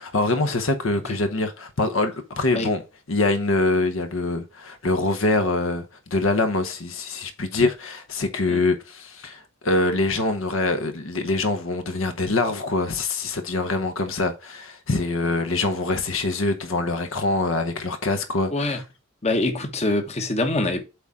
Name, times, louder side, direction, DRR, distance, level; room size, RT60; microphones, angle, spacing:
voice 1, 0.0-2.8 3.1-18.8, left 2 dB, 65° left, 1.0 m, -24 dB
voice 2, 18.5-18.8 19.2-20.8, left 2 dB, 30° left, 1.0 m, -24 dB
8.1 x 3.7 x 4.1 m
head